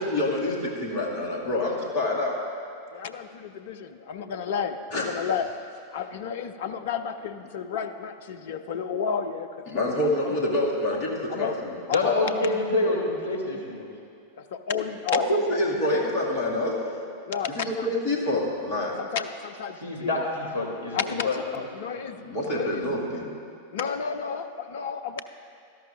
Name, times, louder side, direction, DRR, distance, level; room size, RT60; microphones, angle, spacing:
voice 1, 0.0-2.4 4.9-5.1 9.7-11.8 15.1-16.8 17.5-18.9 22.3-23.3, left 1 dB, 40° left, -2 dB, 2.2 m, -26 dB
voice 2, 2.9-5.5 5.9-10.4 11.3-11.6 11.9-12.7 14.4-15.6 15.9-16.1 17.3-17.9 18.2-18.4 19.0-20.2 20.9-22.2 22.5-22.9 23.7-25.2, left 7 dB, 55° left, 10 dB, 0.5 m, -32 dB
voice 3, 11.9-13.9 19.8-21.4 21.9-22.0, left 2 dB, 85° right, -1 dB, 2.3 m, -27 dB
16.5 x 13.0 x 2.5 m, 2.4 s
figure-of-eight pair, 90°, 0 cm